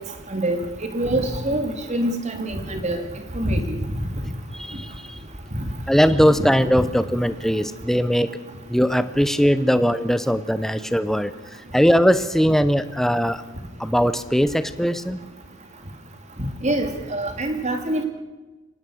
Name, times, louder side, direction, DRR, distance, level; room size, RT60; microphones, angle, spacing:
voice 1, 0.3-0.6 0.9-3.0 3.4-3.8 6.2-6.5 16.6-18.0, right 1 dB, 30° right, 5 dB, 2.6 m, -25 dB
voice 2, 4.5-5.2 5.9-8.4 8.7-13.4 13.8-15.2, equal, ahead, 12 dB, 0.8 m, -20 dB
24.5 x 19.0 x 6.3 m, 1.2 s
head